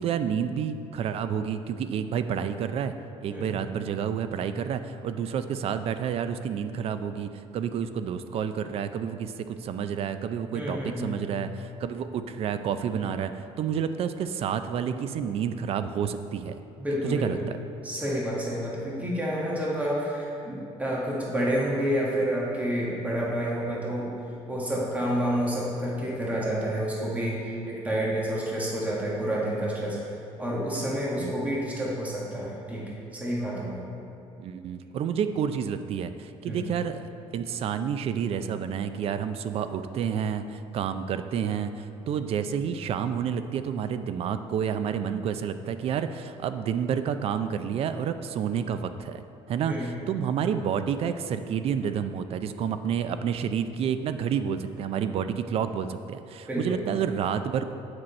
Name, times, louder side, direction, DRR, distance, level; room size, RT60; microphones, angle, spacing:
voice 1, 0.0-2.9 3.2-16.5 17.0-17.6 31.1-31.5 34.4-37.1 37.3-57.7, right 8 dB, 55° right, 10 dB, 0.4 m, -29 dB
voice 2, 10.5-11.2 16.8-17.4 17.8-24.1 24.5-30.0 30.4-33.8 36.4-36.7 49.7-49.9 56.5-56.8, equal, 10° right, -5 dB, 1.7 m, -29 dB
7.7 x 6.2 x 4.2 m, 2.7 s
cardioid pair, 110°, 12 cm